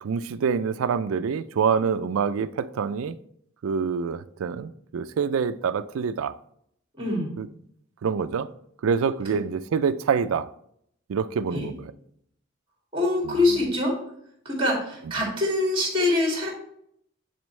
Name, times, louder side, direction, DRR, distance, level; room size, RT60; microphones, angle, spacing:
voice 1, 0.0-3.1 3.6-6.3 7.4-7.5 8.0-8.5 8.8-10.5 11.1-11.8, right 6 dB, 85° right, 0.4 m, -26 dB
voice 2, 7.0-7.3 9.2-9.3 11.5-11.7 12.9-13.9 14.4-16.5, left 2 dB, 25° right, 2.3 m, -24 dB
9.4 x 4.4 x 3.2 m
head